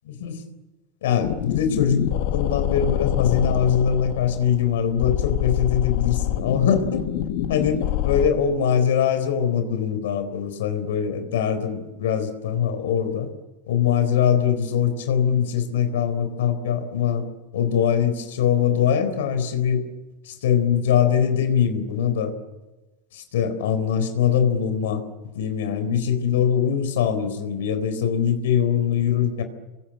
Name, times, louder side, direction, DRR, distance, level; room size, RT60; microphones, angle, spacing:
voice 1, 0.1-0.4 1.0-7.1 7.5-13.3 13.7-17.3 17.5-19.8 20.2-22.3 23.1-25.0 25.3-29.4, left 8 dB, 85° left, 10 dB, 3.9 m, -22 dB
sound 1, 1.2-8.3, left 13 dB, 60° left, 1.7 m, -26 dB
27.0 x 22.5 x 8.5 m, 1.1 s
supercardioid pair, 150°, 0 cm